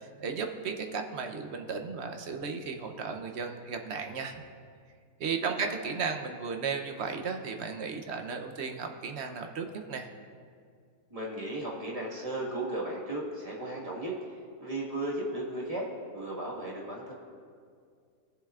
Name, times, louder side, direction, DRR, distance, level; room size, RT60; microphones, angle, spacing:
voice 1, 0.2-4.4 5.2-10.1, right 5 dB, 55° right, 5 dB, 0.9 m, -35 dB
voice 2, 5.3-5.7 11.1-14.1 14.6-17.1, right 1 dB, 25° right, -5 dB, 1.7 m, -35 dB
19.0 x 7.4 x 2.4 m, 2.2 s
omnidirectional pair, 1.5 m